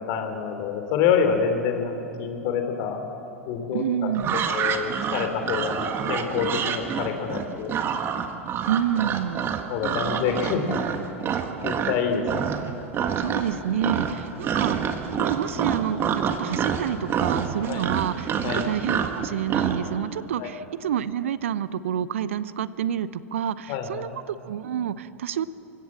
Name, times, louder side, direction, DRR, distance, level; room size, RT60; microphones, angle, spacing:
voice 1, 0.0-3.0 3.5-7.7 9.7-11.0 11.6-12.5 17.7-17.8 18.4-18.6 20.4-20.5 23.7-24.1, left 6 dB, 45° left, 6 dB, 3.2 m, -27 dB
voice 2, 3.7-4.4 8.7-9.5 13.2-25.5, right 9 dB, 65° right, 17 dB, 0.7 m, -28 dB
sound 1, 4.1-12.0 12.2-12.7 12.9-13.6 13.8-19.8, right 8 dB, 30° right, 1.8 m, -27 dB
27.0 x 16.0 x 7.5 m, 2.9 s
figure-of-eight pair, 85°, 7 cm